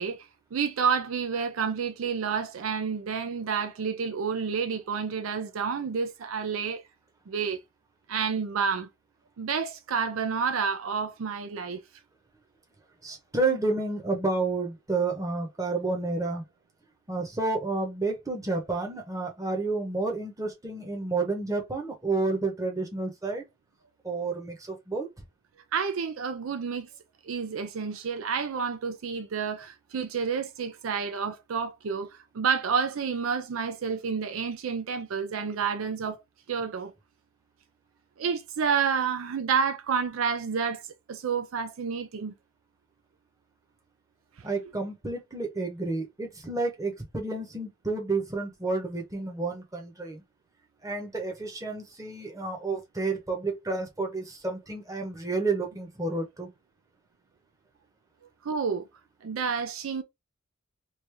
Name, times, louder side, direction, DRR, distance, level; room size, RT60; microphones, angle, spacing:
voice 1, 0.0-6.8 7.3-7.6 8.1-8.9 9.4-11.8 25.7-26.9 27.2-32.1 32.3-36.2 36.5-36.9 38.2-42.3 58.4-58.9 59.2-60.0, right 6 dB, 70° right, 0.4 m, -29 dB
voice 2, 13.0-16.4 17.1-23.4 24.0-25.1 44.4-50.2 50.8-56.5, right 3 dB, 15° right, 0.9 m, -30 dB
3.2 x 2.6 x 3.4 m
head